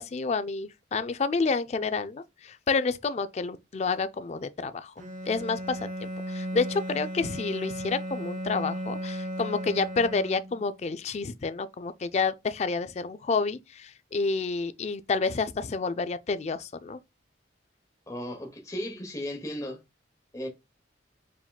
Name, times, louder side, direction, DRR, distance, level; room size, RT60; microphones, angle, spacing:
voice 1, 0.0-4.9 5.3-17.0, left 4 dB, 35° left, 0.3 m, -29 dB
Bowed string instrument, 5.0-10.8, right 1 dB, 40° right, 0.7 m, -35 dB
voice 2, 18.1-19.8 20.3-20.5, left 1 dB, 15° left, 0.9 m, -35 dB
4.7 x 3.6 x 2.3 m
head